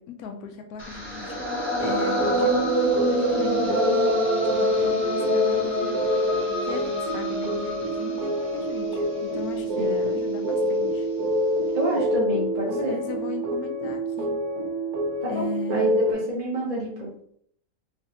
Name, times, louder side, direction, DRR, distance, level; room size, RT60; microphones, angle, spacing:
voice 1, 0.1-1.4 1.8-5.9 6.6-11.1 12.7-14.3 15.3-16.0, left 6 dB, 85° left, 5 dB, 1.1 m, -37 dB
sound 1, 0.8-10.9, right 1 dB, 10° left, 0.9 m, -28 dB
sound 2, 1.8-16.1, equal, 85° right, 1.2 m, -27 dB
voice 2, 11.7-12.9 15.3-17.3, right 2 dB, 35° right, -5 dB, 0.6 m, -29 dB
3.2 x 3.2 x 2.8 m, 0.65 s
omnidirectional pair, 1.5 m